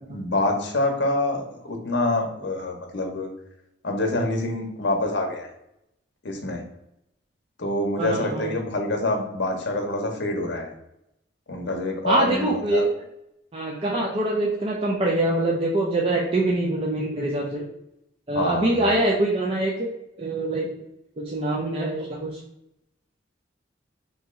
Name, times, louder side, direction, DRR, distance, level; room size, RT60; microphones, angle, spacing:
voice 1, 0.1-3.3 3.8-5.5 6.2-6.6 7.6-10.7 11.5-12.8 18.3-19.0, left 2 dB, 65° left, 3 dB, 0.7 m, -26 dB
voice 2, 8.0-8.5 12.1-12.9 13.5-17.6 18.3-19.9 20.2-20.7 21.2-22.4, right 2 dB, 30° right, -3 dB, 0.4 m, -24 dB
3.0 x 2.7 x 3.5 m, 0.83 s
head